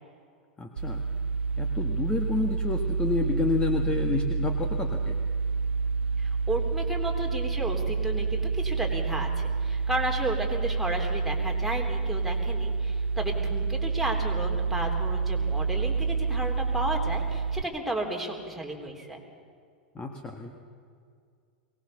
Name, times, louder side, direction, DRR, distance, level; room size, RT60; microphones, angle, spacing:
voice 1, 0.6-1.0 1.6-5.2 19.9-20.5, left 4 dB, 20° left, 3 dB, 1.8 m, -29 dB
sound 1, 0.8-17.6, right 4 dB, 80° right, 0.5 m, -28 dB
voice 2, 6.2-19.2, right 1 dB, ahead, 0 dB, 3.8 m, -33 dB
23.0 x 19.5 x 7.1 m, 2.2 s
hypercardioid pair, 95°, 5 cm